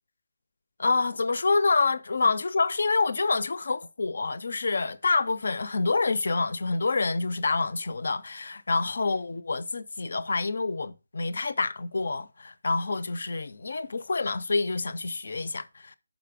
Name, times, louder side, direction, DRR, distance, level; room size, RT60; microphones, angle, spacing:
voice 1, 0.8-15.9, left 3 dB, 55° left, 0.6 m, -27 dB
5.9 x 5.3 x 5.0 m
hypercardioid pair, 175°, 0 cm